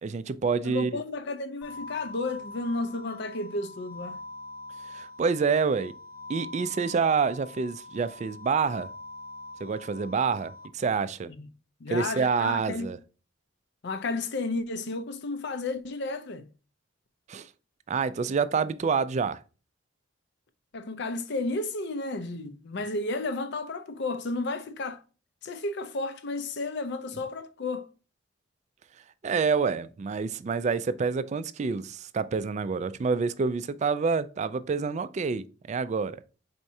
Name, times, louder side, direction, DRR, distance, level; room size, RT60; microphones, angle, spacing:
voice 1, 0.0-1.0 4.9-5.9 6.3-8.9 9.6-11.3 11.9-13.0 17.3-17.5 17.9-19.4 29.2-36.2, right 5 dB, 35° right, 0.3 m, -27 dB
voice 2, 0.6-4.2 11.4-11.5 11.8-12.9 13.8-16.5 20.7-25.0 25.4-27.9, left 2 dB, 60° left, 0.6 m, -32 dB
sound 1, 1.6-10.7, left 2 dB, 20° left, 0.8 m, -43 dB
4.6 x 4.2 x 2.6 m
head